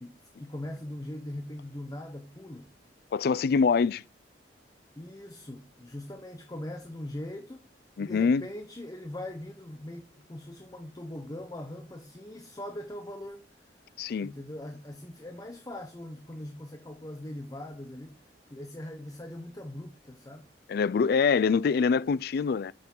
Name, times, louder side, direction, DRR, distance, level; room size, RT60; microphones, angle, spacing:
voice 1, 0.0-2.7 4.9-7.6 8.0-13.5 14.2-18.2 18.5-20.4, left 1 dB, 20° left, 0.9 m, -41 dB
voice 2, 3.1-4.0 8.0-8.5 14.0-14.3 20.7-22.7, left 5 dB, 55° left, 0.3 m, -24 dB
7.0 x 6.0 x 5.4 m
head